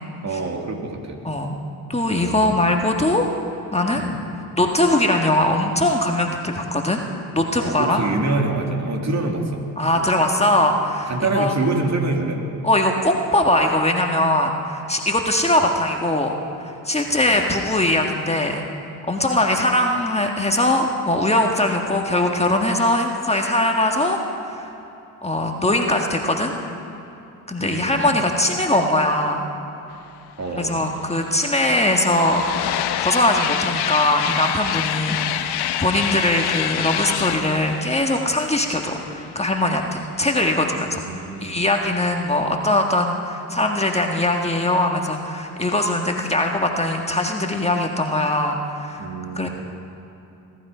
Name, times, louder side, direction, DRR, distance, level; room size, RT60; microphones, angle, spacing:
voice 1, 0.2-1.5 2.1-2.6 3.9-4.2 7.6-9.6 9.9-10.1 11.1-12.5 17.1-17.7 27.6-28.2 30.4-30.8 40.8-41.6 49.0-49.5, right 3 dB, 40° right, 2 dB, 2.6 m, -26 dB
voice 2, 1.2-1.6 1.9-3.2 3.7-4.0 4.6-7.0 7.3-8.0 9.8-11.5 12.6-16.3 16.8-18.6 19.1-24.2 24.4-24.7 25.2-26.5 27.5-29.5 30.6-32.4 33.0-41.0 41.4-49.0 49.3-49.5, left 1 dB, 15° left, 2 dB, 1.7 m, -21 dB
sound 1, 30.5-30.6 30.8-39.4, left 11 dB, 70° left, 0.9 m, -27 dB
21.0 x 12.0 x 5.1 m, 3.0 s
supercardioid pair, 55°, 41 cm